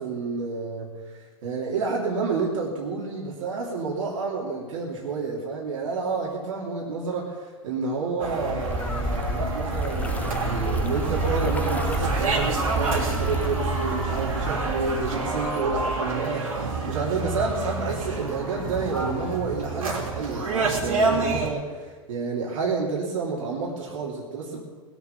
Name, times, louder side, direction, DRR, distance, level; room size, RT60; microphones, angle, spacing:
voice 1, 0.0-24.6, right 4 dB, 75° right, -2 dB, 3.0 m, -29 dB
sound 1, 8.2-21.5, right 3 dB, 90° right, 3.2 m, -28 dB
sound 2, 8.6-15.6, left 2 dB, 10° left, 0.8 m, -33 dB
20.0 x 7.3 x 7.2 m, 1.4 s
hypercardioid pair, 115°, 17 cm